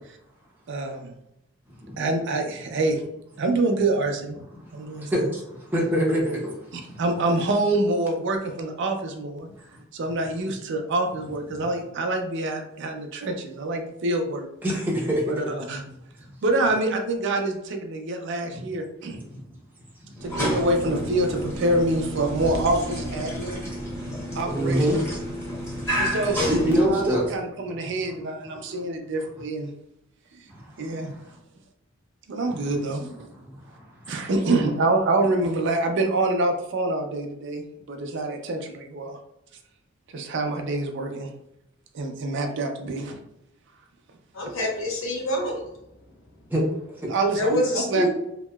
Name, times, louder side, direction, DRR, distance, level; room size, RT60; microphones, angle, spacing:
voice 1, 0.7-1.1 2.0-3.0 3.4-4.4 4.7-5.1 6.7-9.5 9.9-14.5 15.3-15.8 16.4-19.2 20.2-23.7 24.4-25.0 26.0-26.5 26.9-29.7 30.8-31.1 32.3-33.3 34.1-39.2 40.1-41.3 41.9-43.2 47.1-47.6 47.9-48.1, right 2 dB, 60° right, 4 dB, 0.5 m, -26 dB
voice 2, 4.6-7.0 9.7-9.8 14.6-15.2 18.5-18.6 19.1-19.4 20.1-20.2 24.5-25.0 26.3-27.3 27.6-28.1 28.5-28.8 30.5-31.2 33.0-33.1 33.7-33.9 46.5-46.6 47.0-47.1, equal, 10° right, -5 dB, 0.6 m, -26 dB
sound 1, 20.2-27.4, equal, 15° left, 0.9 m, -30 dB
voice 3, 44.3-45.6 47.3-48.1, left 1 dB, 85° left, -1 dB, 0.8 m, -25 dB
2.8 x 2.8 x 2.2 m, 0.83 s
head